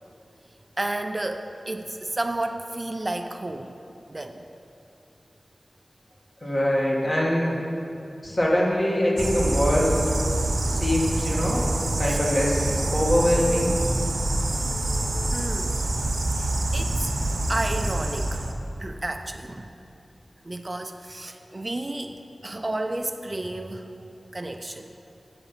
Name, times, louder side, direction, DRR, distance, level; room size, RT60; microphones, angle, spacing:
voice 1, 0.8-3.8 4.1-4.5 12.1-12.2 15.3-15.7 16.4-17.1 17.5-18.5 18.8-19.7 20.4-23.9 24.3-24.9, right 2 dB, 35° right, 6 dB, 0.4 m, -32 dB
voice 2, 6.4-7.6 8.2-10.1 10.6-11.6 12.0-13.8, equal, 45° left, -4 dB, 1.8 m, -23 dB
sound 1, 9.2-18.5, right 2 dB, 70° right, 0.8 m, -26 dB
8.8 x 5.9 x 5.5 m, 2.7 s
wide cardioid pair, 70°, 0 cm